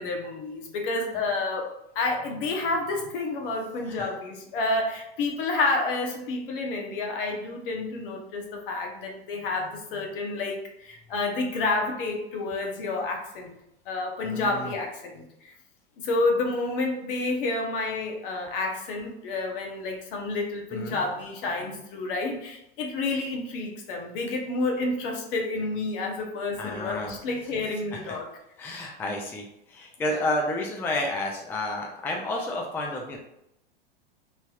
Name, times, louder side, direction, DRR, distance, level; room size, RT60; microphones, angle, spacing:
voice 1, 0.0-13.5 13.9-15.5 16.0-28.3 30.1-30.2, left 3 dB, 60° left, 1 dB, 0.9 m, -29 dB
voice 2, 14.2-14.8 20.7-21.0 26.6-27.1 27.9-28.2 28.6-29.4 29.7-33.2, left 1 dB, 5° left, 0 dB, 0.3 m, -31 dB
3.3 x 2.7 x 2.3 m, 0.80 s
hypercardioid pair, 100°, 30 cm